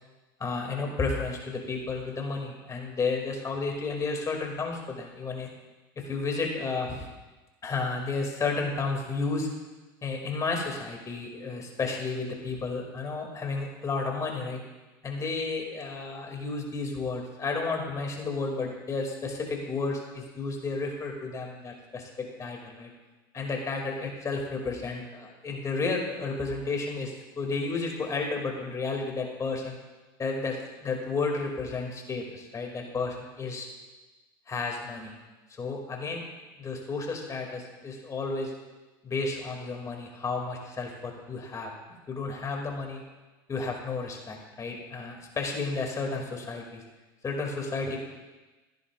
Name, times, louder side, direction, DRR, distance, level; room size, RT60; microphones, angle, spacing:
voice 1, 0.4-5.5 6.0-7.1 7.6-9.5 10.0-14.6 15.0-22.9 23.3-29.8 30.2-33.7 34.5-35.1 35.5-36.2 36.6-38.5 39.0-41.7 42.1-43.0 43.5-46.8 47.2-48.0, left 3 dB, 30° left, 1 dB, 2.6 m, -32 dB
15.0 x 10.5 x 2.5 m, 1.2 s
supercardioid pair, 100°, 12 cm